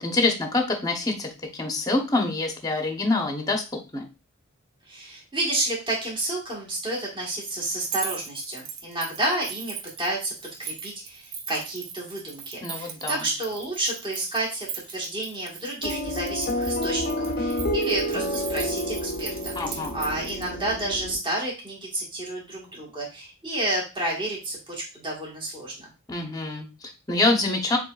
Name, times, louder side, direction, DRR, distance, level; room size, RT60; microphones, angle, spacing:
voice 1, 0.0-3.6 3.9-4.1 12.6-13.3 19.6-20.0 26.1-27.8, left 2 dB, 20° left, 3 dB, 0.8 m, -26 dB
voice 2, 4.9-10.3 10.6-25.9, right 1 dB, 25° right, -3 dB, 1.6 m, -30 dB
sound 1, 7.8-20.5, right 7 dB, 90° right, 0.9 m, -39 dB
sound 2, 15.8-21.2, equal, 45° left, 0.5 m, -29 dB
7.0 x 3.0 x 2.4 m, 0.30 s
head